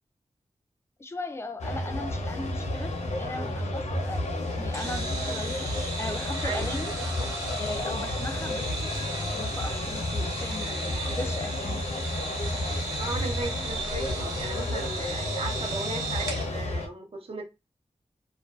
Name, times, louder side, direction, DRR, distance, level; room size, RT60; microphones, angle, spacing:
voice 1, 1.0-4.2 4.6-5.7 6.0-6.9 7.6-8.8 9.3-11.8, left 2 dB, 20° left, 0.4 m, -38 dB
sound 1, 1.6-16.9, left 1 dB, 80° left, 0.6 m, -31 dB
sound 2, 4.7-16.5, right 3 dB, 30° right, 1.0 m, -36 dB
voice 2, 12.9-17.4, right 2 dB, 55° right, 0.7 m, -36 dB
2.5 x 2.2 x 2.3 m
wide cardioid pair, 95°, 12 cm